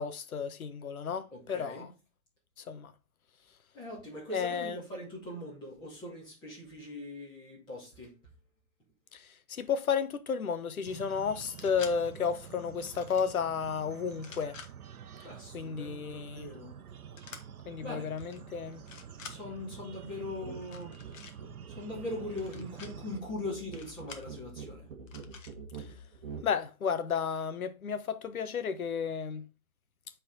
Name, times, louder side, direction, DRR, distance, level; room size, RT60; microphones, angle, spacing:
voice 1, 0.0-1.9 2.6-2.9 4.3-4.8 9.1-14.6 15.5-16.5 17.6-18.8 25.8-25.9 26.4-29.5, left 6 dB, 75° left, 1.1 m, -33 dB
voice 2, 1.3-1.9 3.7-8.2 15.2-16.8 17.8-18.2 19.3-20.9 21.3-24.9, left 1 dB, 10° left, 2.2 m, -41 dB
sound 1, 10.9-23.2, right 8 dB, 80° right, 0.9 m, -48 dB
sound 2, 11.4-11.9 12.8-13.3 14.1-14.7 17.2-17.4 18.2-18.4 18.7-19.4 20.6-21.3 22.3-22.9 23.7-24.3 25.1-25.5, left 5 dB, 60° left, 1.4 m, -48 dB
sound 3, 20.4-20.6 20.9-26.5, right 5 dB, 35° right, 1.3 m, -46 dB
7.8 x 4.2 x 4.0 m
hypercardioid pair, 165°, 43 cm